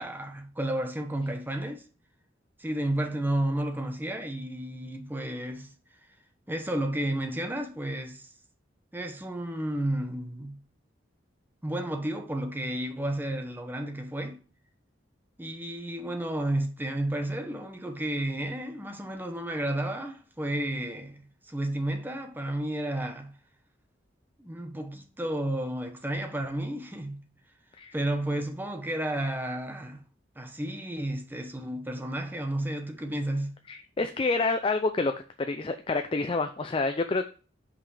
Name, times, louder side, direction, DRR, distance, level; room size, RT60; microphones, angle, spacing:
voice 1, 0.0-1.8 2.6-5.7 6.5-8.3 8.9-10.6 11.6-14.4 15.4-23.3 24.4-27.2 27.9-30.0 30.4-33.6, right 1 dB, 10° right, 0.9 m, -32 dB
voice 2, 33.7-35.1 35.4-37.3, left 3 dB, 30° left, 0.4 m, -28 dB
5.7 x 5.0 x 4.8 m
head